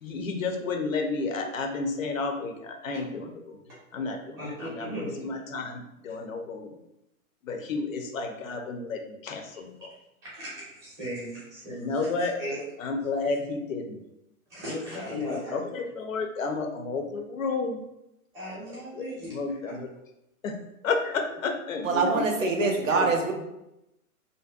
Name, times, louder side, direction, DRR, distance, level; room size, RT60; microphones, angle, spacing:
voice 1, 0.0-3.6 3.9-4.4 4.8-6.7 7.5-9.7 11.7-12.3 12.8-14.0 15.3-17.8 19.0-19.1 19.3-19.9 20.4-20.5 20.8-22.7 22.9-23.1, left 4 dB, 65° left, 4 dB, 0.5 m, -31 dB
voice 2, 4.4-5.2 10.2-12.6 14.5-15.6 18.3-19.8 21.0-21.1, equal, 10° right, -9 dB, 0.4 m, -37 dB
voice 3, 21.8-23.3, right 4 dB, 60° right, 4 dB, 0.5 m, -24 dB
2.5 x 2.1 x 2.3 m, 0.88 s
figure-of-eight pair, 110°, 44 cm